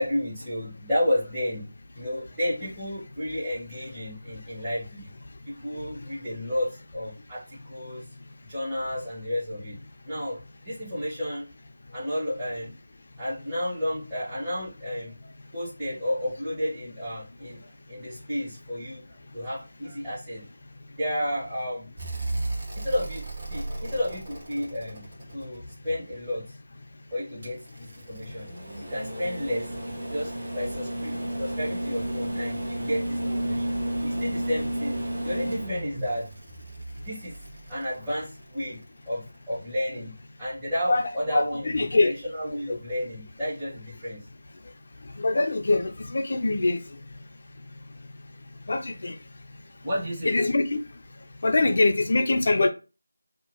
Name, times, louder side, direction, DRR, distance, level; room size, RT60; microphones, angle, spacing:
voice 1, 0.0-1.7 1.9-5.1 5.4-8.0 8.4-9.8 10.0-11.5 11.9-12.7 13.2-20.4 21.0-22.1 22.6-25.1 25.3-26.6 27.1-28.5 28.8-29.7 30.1-36.3 37.0-37.3 37.7-38.8 39.1-40.1 40.4-44.2 49.8-50.4, left 1 dB, 15° right, 1.3 m, -32 dB
sound 1, 22.0-26.1 27.4-38.6 40.2-40.3, right 1 dB, 45° right, 1.3 m, -33 dB
voice 2, 41.7-42.1 45.2-46.8 48.7-49.2 50.3-50.8 51.4-52.7, left 2 dB, 45° left, 0.6 m, -23 dB
2.7 x 2.4 x 3.0 m
figure-of-eight pair, 165°, 0 cm